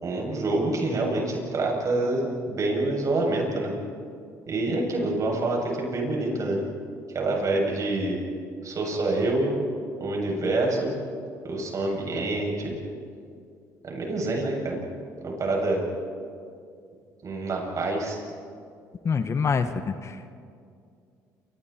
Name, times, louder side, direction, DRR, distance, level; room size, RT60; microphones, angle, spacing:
voice 1, 0.0-3.7 4.5-6.6 7.1-8.2 8.6-9.6 10.0-10.9 11.4-12.7 13.8-14.8 15.2-15.8 17.2-18.2, right 2 dB, 45° right, -1 dB, 7.9 m, -26 dB
voice 2, 19.0-20.3, left 5 dB, 40° left, 9 dB, 1.4 m, -26 dB
28.5 x 27.0 x 4.6 m, 2.3 s
supercardioid pair, 75°, 7 cm